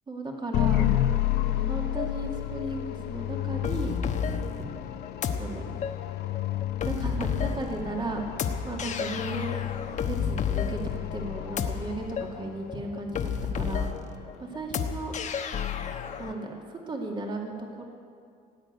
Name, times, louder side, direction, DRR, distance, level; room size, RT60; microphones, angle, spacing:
voice 1, 0.1-0.9 1.5-3.9 4.6-4.7 5.4-5.6 6.8-8.2 8.6-9.6 10.0-10.8 11.1-13.9 14.4-15.1 16.2-17.5 17.8-17.9, right 2 dB, 30° right, 0 dB, 2.4 m, -35 dB
sound 1, 0.5-12.7, left 13 dB, 75° left, 0.7 m, -31 dB
sound 2, 3.6-16.3, left 6 dB, 45° left, 1.2 m, -32 dB
17.5 x 8.8 x 9.4 m, 2.4 s
cardioid pair, 110°, 17 cm